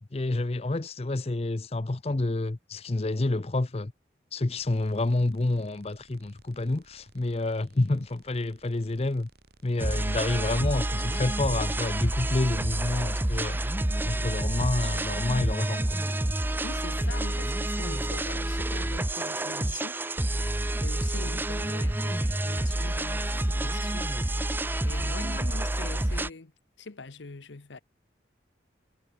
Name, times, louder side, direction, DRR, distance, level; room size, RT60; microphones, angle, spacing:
voice 1, 0.1-3.9 4.3-9.3 9.6-13.6 14.0-16.0, left 2 dB, 35° left, 0.6 m, -28 dB
sound 1, 4.6-12.6, right 2 dB, 60° right, 2.9 m, -59 dB
sound 2, 9.8-26.3, right 1 dB, 10° right, 0.6 m, -28 dB
voice 2, 16.6-20.0 20.8-24.1 24.8-26.5 26.8-27.8, left 3 dB, 85° left, 1.0 m, -43 dB
head